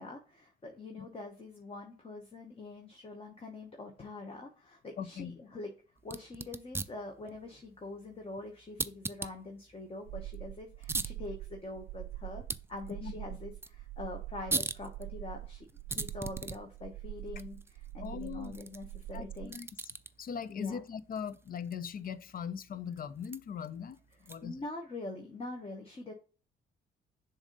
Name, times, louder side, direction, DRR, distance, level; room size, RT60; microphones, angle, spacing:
voice 1, 0.0-5.7 6.0-12.4 12.7-19.6 20.5-20.8 24.4-26.1, left 2 dB, 30° left, 1.1 m, -44 dB
voice 2, 5.0-5.4 13.0-13.4 18.0-18.6 19.1-19.7 20.2-24.6, left 7 dB, 45° left, 0.6 m, -40 dB
sound 1, 6.0-24.7, right 3 dB, 10° right, 0.4 m, -43 dB
sound 2, 10.1-19.5, right 16 dB, 90° right, 0.4 m, -44 dB
7.0 x 2.7 x 5.2 m
cardioid pair, 90°, 20 cm